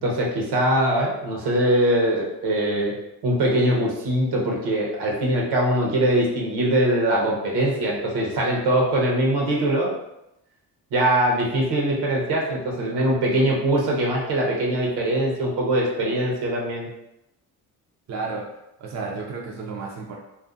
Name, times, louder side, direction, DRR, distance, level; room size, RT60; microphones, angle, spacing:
voice 1, 0.0-2.9 3.2-9.9 10.9-16.9, right 1 dB, 75° right, -2 dB, 0.9 m, -22 dB
voice 2, 18.1-18.4 18.8-20.2, right 4 dB, 45° right, -2 dB, 0.6 m, -32 dB
2.6 x 2.4 x 2.4 m, 0.86 s
supercardioid pair, 70°, 40 cm